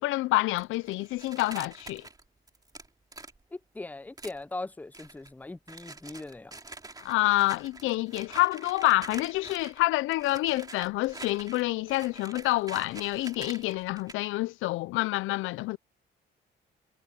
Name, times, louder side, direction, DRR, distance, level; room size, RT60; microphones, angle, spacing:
voice 1, 0.0-2.1 7.0-15.8, left 19 dB, 85° left, 0.4 m, -27 dB
sound 1, 0.6-3.4 4.2-4.4 4.9-5.3 5.7-9.8 10.1-14.1, right 3 dB, 20° right, 3.0 m, -46 dB
voice 2, 3.5-6.6, left 2 dB, 10° left, 0.5 m, -40 dB
cardioid pair, 90°, 20 cm